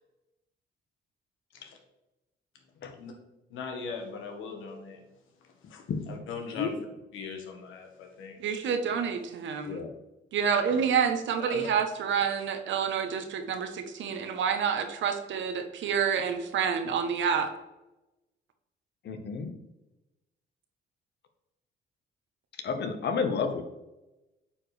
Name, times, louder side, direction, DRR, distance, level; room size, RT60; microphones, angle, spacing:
voice 1, 3.5-5.0 5.4-6.7 7.1-8.4 11.4-11.7, left 5 dB, 85° left, 3 dB, 1.4 m, -40 dB
voice 2, 8.4-9.8 10.3-17.5, right 7 dB, 70° right, 7 dB, 1.0 m, -28 dB
voice 3, 19.0-19.5 22.6-23.6, left 5 dB, 60° left, 7 dB, 1.0 m, -31 dB
8.7 x 4.6 x 3.3 m, 1.0 s
cardioid pair, 90°, 20 cm